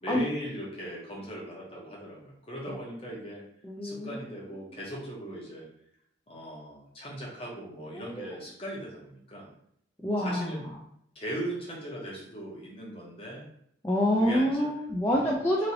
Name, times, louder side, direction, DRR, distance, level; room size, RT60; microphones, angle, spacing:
voice 1, 0.0-3.4 3.8-5.7 6.3-9.5 10.2-10.7 11.1-13.5 14.1-14.9 15.2-15.3, equal, 30° left, -4 dB, 0.8 m, -39 dB
voice 2, 3.6-4.2 7.9-8.3 10.0-10.5 13.8-15.7, equal, 15° left, -5 dB, 0.3 m, -27 dB
3.0 x 2.7 x 2.7 m, 0.69 s
head